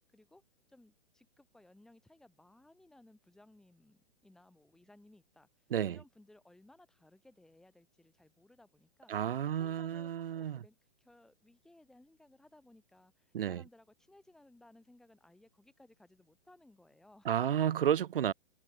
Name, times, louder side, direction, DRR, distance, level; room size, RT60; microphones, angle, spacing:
voice 1, 0.1-9.1 9.4-17.3, left 1 dB, ahead, 2.5 m, -62 dB
voice 2, 9.1-10.6 13.3-13.6 17.3-18.3, right 10 dB, 50° right, 0.5 m, -31 dB
hypercardioid pair, 175°, 35 cm